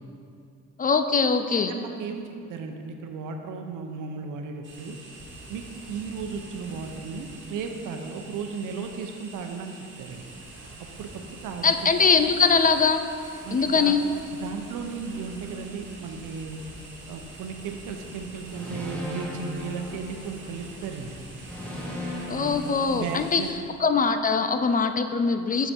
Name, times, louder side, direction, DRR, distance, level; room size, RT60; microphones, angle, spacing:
voice 1, 0.8-1.7 11.6-13.0 13.5-14.0 22.3-23.4 23.8-25.7, left 5 dB, 30° left, 8 dB, 0.4 m, -22 dB
voice 2, 1.7-5.0 5.5-10.3 11.0-11.9 13.4-14.0 14.3-16.6 17.1-21.2 22.4-23.5, right 5 dB, 85° right, 4 dB, 0.8 m, -35 dB
sound 1, 4.6-23.5, right 2 dB, 40° right, 1.8 m, -45 dB
sound 2, 18.5-20.7 21.4-23.6, equal, 5° left, 1.5 m, -36 dB
6.8 x 6.5 x 4.5 m, 2.4 s
cardioid pair, 90°, 30 cm